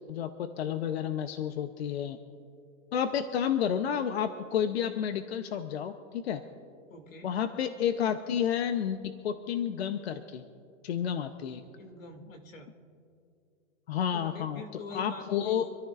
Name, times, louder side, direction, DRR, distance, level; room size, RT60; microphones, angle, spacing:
voice 1, 0.1-2.2 2.9-6.4 7.2-10.4 10.8-11.6 13.9-14.6 14.9-15.7, left 8 dB, 55° left, 9 dB, 0.8 m, -30 dB
voice 2, 6.9-7.4 11.8-12.7 14.1-15.7, left 3 dB, 85° left, 4 dB, 2.5 m, -45 dB
26.0 x 13.5 x 2.5 m, 2.6 s
hypercardioid pair, 175°, 38 cm